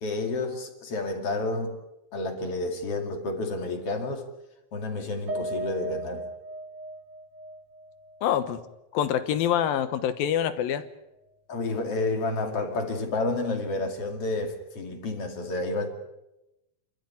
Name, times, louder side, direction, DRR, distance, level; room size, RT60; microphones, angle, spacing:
voice 1, 0.0-1.8 2.1-4.3 4.7-6.3 11.5-15.9, left 2 dB, 45° left, 3.2 m, -30 dB
Piano, 5.3-9.8 10.1-10.3 10.7-10.8, right 2 dB, 60° right, 5.8 m, -38 dB
voice 2, 8.2-8.6 8.9-10.8, left 10 dB, 85° left, 3.0 m, -25 dB
28.5 x 13.5 x 9.5 m
omnidirectional pair, 4.0 m